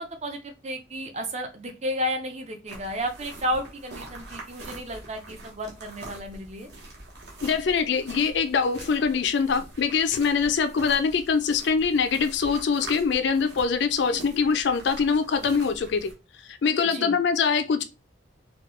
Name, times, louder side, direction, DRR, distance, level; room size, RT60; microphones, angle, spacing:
voice 1, 0.0-6.7 14.1-14.4 16.8-17.2, equal, 35° right, 0.6 m, -32 dB
sound 1, 2.7-16.1, right 2 dB, 55° right, 1.1 m, -44 dB
voice 2, 7.4-16.1 16.5-17.8, left 5 dB, 65° left, 0.4 m, -23 dB
4.3 x 2.3 x 3.1 m
head